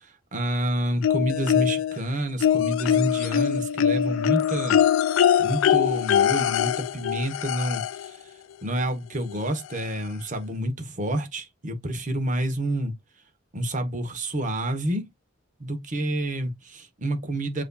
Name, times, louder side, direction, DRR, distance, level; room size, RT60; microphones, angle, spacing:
voice 1, 0.3-4.8 5.4-7.8 8.6-12.9 13.5-15.1 15.6-17.6, right 1 dB, 40° right, 1.0 m, -28 dB
sound 1, 1.0-2.0 2.4-8.1 9.3-9.4 9.8-9.9, left 9 dB, 75° left, 0.3 m, -22 dB
7.5 x 2.7 x 2.3 m
head